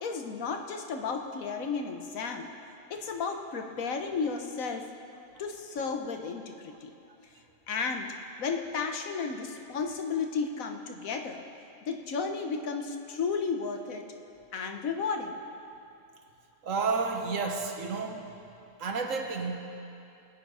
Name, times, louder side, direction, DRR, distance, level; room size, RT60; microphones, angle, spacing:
voice 1, 0.0-2.5 2.9-4.9 5.4-6.9 7.7-8.1 8.4-11.4 11.9-14.0 14.5-15.4 19.4-19.5, left 5 dB, 75° left, 4 dB, 1.4 m, -33 dB
voice 2, 16.6-18.3 18.8-19.6, right 4 dB, 70° right, 3 dB, 1.5 m, -31 dB
21.0 x 8.7 x 5.0 m, 2.7 s
omnidirectional pair, 1.4 m